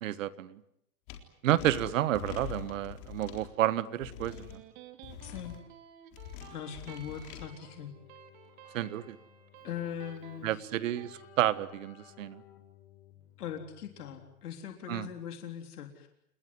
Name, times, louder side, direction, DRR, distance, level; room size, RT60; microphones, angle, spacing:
voice 1, 0.0-0.6 1.4-4.6 8.7-9.2 10.4-12.4 14.9-15.1, right 13 dB, 55° right, 16 dB, 1.5 m, -30 dB
sound 1, 1.1-1.2 1.6-3.5 4.0-4.5 5.0-5.6 6.1-7.4, left 10 dB, 30° left, 3.9 m, -44 dB
Electric guitar, 3.8-11.2, right 10 dB, 30° right, 2.6 m, -53 dB
voice 2, 5.2-5.6 6.5-7.9 9.6-10.6 13.4-16.1, left 9 dB, 75° left, 4 dB, 3.8 m, -40 dB
Keyboard (musical), 7.3-14.6, left 13 dB, 55° left, 6.1 m, -58 dB
29.5 x 19.5 x 9.5 m, 0.77 s
supercardioid pair, 170°, 46 cm